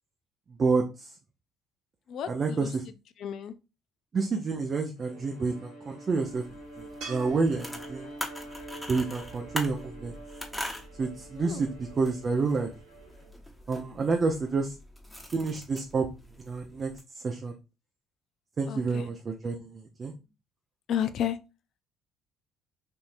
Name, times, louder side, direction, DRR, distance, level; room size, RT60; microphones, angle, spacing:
voice 1, 0.6-1.1 2.3-2.8 4.1-6.4 6.8-8.1 8.9-10.1 11.0-12.7 13.7-14.7 15.3-16.1 16.4-17.5 18.6-20.1, right 4 dB, 40° right, 0.5 m, -29 dB
voice 2, 2.1-2.7 3.2-3.5 11.4-11.6 18.7-19.1 20.9-21.4, left 9 dB, 60° left, 0.4 m, -32 dB
Bowed string instrument, 5.0-13.4, right 1 dB, 90° right, 1.4 m, -47 dB
sound 1, 6.2-17.0, left 1 dB, 5° left, 1.0 m, -43 dB
sound 2, 7.0-10.2 13.5-13.6, right 4 dB, 70° right, 1.3 m, -48 dB
3.6 x 2.7 x 2.6 m
hypercardioid pair, 60°, 0 cm